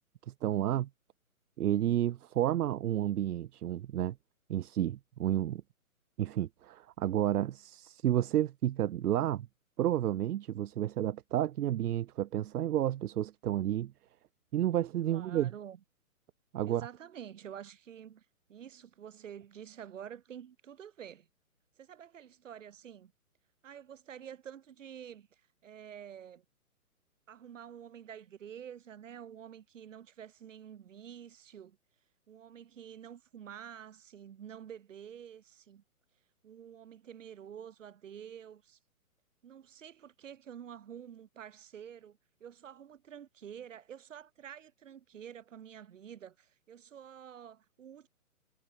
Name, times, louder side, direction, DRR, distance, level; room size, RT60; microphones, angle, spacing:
voice 1, 0.4-0.9 1.6-4.2 4.5-5.6 6.2-9.5 9.8-13.9 14.5-15.5 16.5-16.9, right 12 dB, 85° right, 0.5 m, -31 dB
voice 2, 15.1-15.8 16.6-21.3 21.8-23.1 23.6-26.4 27.3-31.8 32.3-35.8 36.4-38.8 39.4-48.1, right 9 dB, 60° right, 2.4 m, -49 dB
hypercardioid pair, 150°, 44 cm